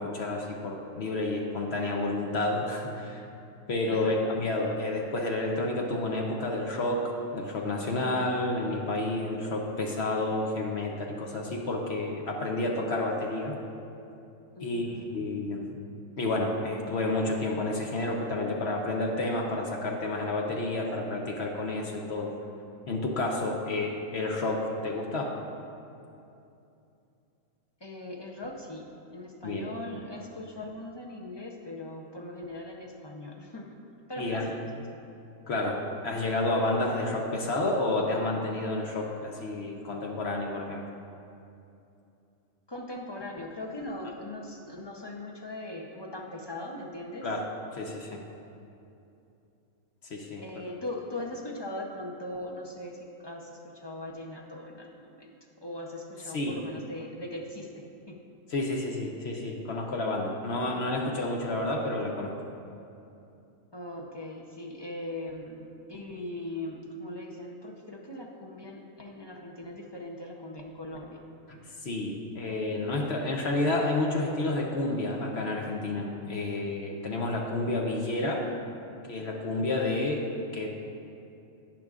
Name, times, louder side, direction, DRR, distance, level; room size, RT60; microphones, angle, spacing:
voice 1, 0.0-3.2 3.7-7.0 7.3-13.6 14.6-15.8 16.2-22.3 22.9-25.3 29.4-29.7 34.2-34.5 35.5-40.8 47.2-47.4 47.7-48.2 50.0-50.4 56.3-56.5 58.5-62.3 71.5-78.5 79.1-80.2 80.5-80.7, left 2 dB, 60° left, 0 dB, 1.0 m, -30 dB
voice 2, 14.6-15.3 27.8-33.7 34.1-34.8 42.7-47.3 50.4-58.2 63.7-71.2, left 1 dB, 30° left, 0 dB, 0.5 m, -40 dB
11.5 x 9.3 x 2.4 m, 2.7 s
omnidirectional pair, 1.4 m